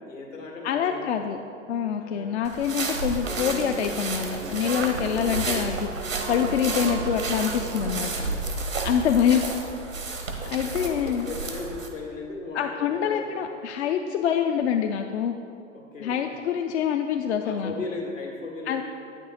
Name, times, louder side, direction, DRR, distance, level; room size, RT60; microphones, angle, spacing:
voice 1, 0.0-1.2 2.0-2.4 5.1-5.7 8.0-8.6 10.4-13.5 15.7-16.3 17.4-18.8, left 3 dB, 85° left, -1 dB, 1.6 m, -38 dB
voice 2, 0.6-1.4 1.7-5.9 6.3-8.1 8.8-9.4 10.4-11.3 12.5-15.3 16.0-17.7 18.7-18.8, left 8 dB, 60° left, 5 dB, 0.5 m, -25 dB
sound 1, 2.4-11.9, right 3 dB, 85° right, 1.0 m, -32 dB
sound 2, 3.2-8.2, right 5 dB, 65° right, 0.6 m, -36 dB
8.9 x 6.0 x 4.0 m, 2.6 s
figure-of-eight pair, 90°, 38 cm